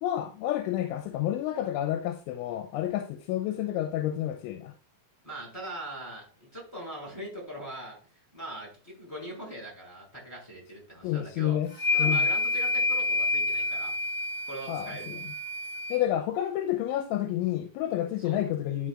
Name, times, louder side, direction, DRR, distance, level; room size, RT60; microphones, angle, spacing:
voice 1, 0.0-4.7 11.0-11.7 12.0-12.2 14.7-15.2 15.9-18.9, left 12 dB, 85° left, 3.1 m, -29 dB
voice 2, 5.2-8.0 8.3-11.6 11.9-13.9 14.4-15.1 18.2-18.4, right 1 dB, 5° left, 4.4 m, -41 dB
sound 1, 11.7-16.0, left 3 dB, 40° left, 1.7 m, -28 dB
11.0 x 6.2 x 2.4 m
omnidirectional pair, 5.3 m